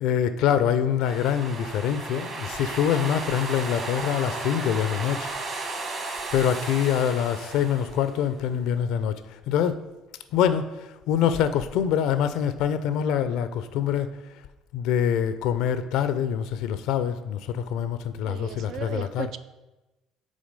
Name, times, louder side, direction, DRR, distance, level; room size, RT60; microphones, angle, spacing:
voice 1, 0.0-5.3 6.3-9.2 9.5-9.8 10.3-14.1 14.7-19.3, left 9 dB, 75° left, 12 dB, 0.4 m, -25 dB
sound 1, 1.0-8.3, right 3 dB, 45° right, 1.7 m, -34 dB
voice 2, 18.2-19.4, right 8 dB, 65° right, 12 dB, 0.4 m, -36 dB
6.3 x 3.9 x 5.2 m, 1.0 s
supercardioid pair, 70°, 0 cm